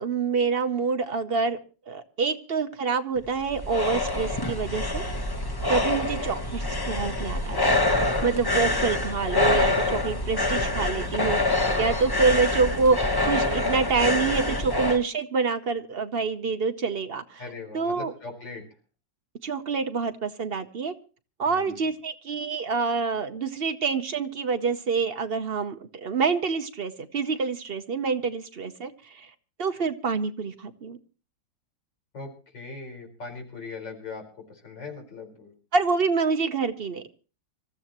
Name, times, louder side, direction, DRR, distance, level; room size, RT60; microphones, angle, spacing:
voice 1, 0.0-1.6 1.9-5.0 5.7-17.4 17.7-18.1 19.4-20.9 21.4-29.3 29.6-31.0 35.7-37.1, right 5 dB, 50° right, 8 dB, 0.7 m, -27 dB
sound 1, 3.2-15.0, left 2 dB, 20° left, 0.7 m, -26 dB
voice 2, 17.4-18.6 21.4-21.8 32.1-35.5, left 4 dB, 75° left, 1 dB, 5.2 m, -40 dB
26.0 x 14.0 x 3.0 m, 0.36 s
omnidirectional pair, 2.0 m